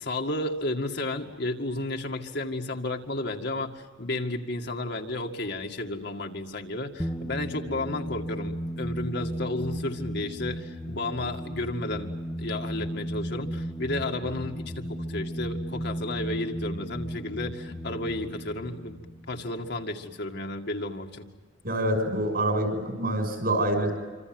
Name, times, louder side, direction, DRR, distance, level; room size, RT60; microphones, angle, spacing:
voice 1, 0.0-12.1 12.4-19.0 19.3-21.2, left 2 dB, 60° left, 3 dB, 2.1 m, -32 dB
sound 1, 7.0-20.2, equal, 10° left, 1.2 m, -35 dB
voice 2, 21.6-23.9, right 1 dB, 55° right, 5 dB, 6.4 m, -26 dB
27.0 x 26.0 x 7.9 m, 1.3 s
head